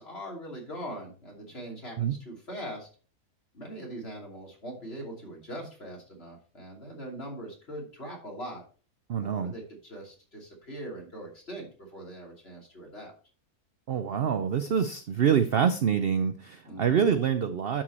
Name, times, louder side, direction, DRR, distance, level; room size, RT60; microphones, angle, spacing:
voice 1, 0.0-2.9 3.5-8.6 9.2-13.1 16.6-17.1, right 1 dB, 40° left, -1 dB, 3.1 m, -41 dB
voice 2, 9.1-9.5 13.9-17.8, right 7 dB, 60° right, 9 dB, 0.6 m, -26 dB
11.0 x 4.7 x 4.3 m, 0.38 s
omnidirectional pair, 1.6 m